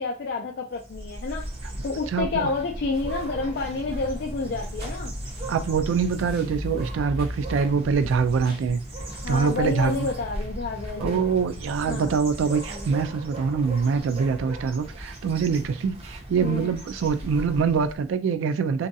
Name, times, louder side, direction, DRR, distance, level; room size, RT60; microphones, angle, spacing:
voice 1, 0.0-1.5 1.8-5.1 9.2-11.2 11.9-12.1 16.4-16.7, left 3 dB, 55° left, 0.3 m, -29 dB
sound 1, 0.7-18.0, right 1 dB, 30° right, 0.5 m, -36 dB
voice 2, 2.1-2.5 5.5-8.8 9.3-10.1 11.0-18.9, right 5 dB, 85° right, 0.3 m, -24 dB
sound 2, 2.9-10.3, equal, 55° right, 0.9 m, -45 dB
2.6 x 2.2 x 2.6 m
head